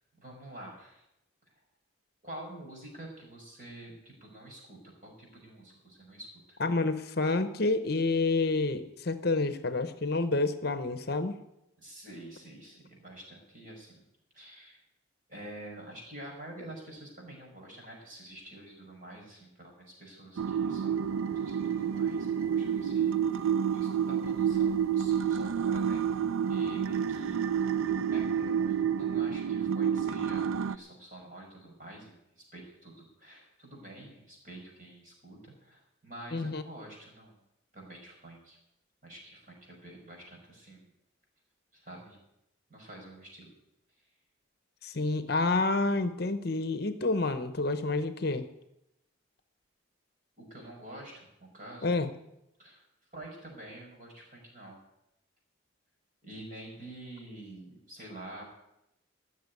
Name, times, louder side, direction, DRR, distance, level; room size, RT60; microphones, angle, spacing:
voice 1, 0.2-1.0 2.2-6.6 11.8-14.0 14.3-14.8 15.3-26.1 26.5-27.4 27.9-37.3 37.7-38.6 39.0-40.9 41.7-42.2 42.7-43.5 50.4-51.3 51.5-51.9 52.6-52.9 53.1-54.8 56.2-58.4, right 1 dB, 40° right, -1 dB, 5.4 m, -48 dB
voice 2, 6.6-11.4 36.3-36.6 44.8-48.5 51.8-52.1, left 3 dB, 50° left, 10 dB, 0.8 m, -29 dB
sound 1, 20.4-30.7, right 8 dB, 90° right, 0.4 m, -29 dB
16.0 x 6.7 x 9.4 m, 0.86 s
head